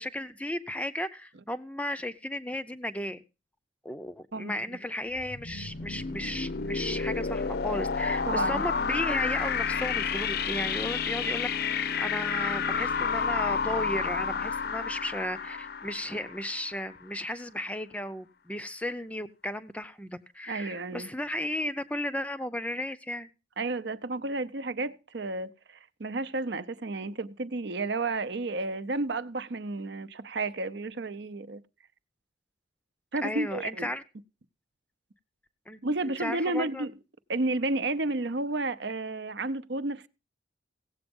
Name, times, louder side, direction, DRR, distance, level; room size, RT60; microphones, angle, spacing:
voice 1, 0.0-3.2 3.8-23.3 33.2-34.0 35.7-36.8, left 1 dB, 5° left, 0.6 m, -35 dB
sound 1, 5.1-16.8, left 5 dB, 50° left, 0.6 m, -30 dB
voice 2, 8.3-8.6 20.5-21.1 23.6-31.6 33.1-33.9 35.8-36.9 37.3-40.1, right 2 dB, 60° right, 0.7 m, -32 dB
16.5 x 7.9 x 5.3 m
head